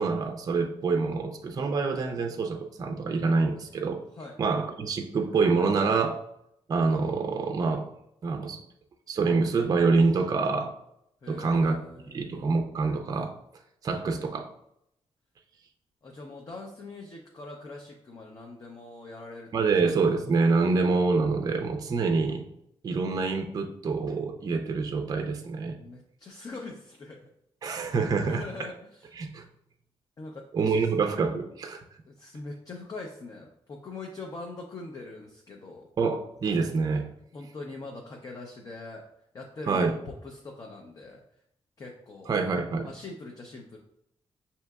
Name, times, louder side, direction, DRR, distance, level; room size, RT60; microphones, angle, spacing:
voice 1, 0.0-4.0 4.4-6.2 6.7-7.9 8.2-8.6 9.1-10.7 11.3-11.8 12.1-13.4 13.8-14.5 19.5-22.4 22.8-25.8 27.6-28.4 29.2-29.4 30.5-31.8 36.0-37.1 39.7-39.9 42.3-42.9, right 4 dB, 35° right, 5 dB, 0.4 m, -26 dB
voice 2, 11.2-12.6 16.0-19.5 25.7-27.3 27.6-27.9 28.3-29.1 30.2-30.9 32.1-35.9 37.3-39.1 39.3-41.2 41.8-42.4 42.8-43.8, left 3 dB, 35° left, 1 dB, 0.5 m, -42 dB
6.3 x 2.8 x 2.3 m, 0.76 s
wide cardioid pair, 140°, 10 cm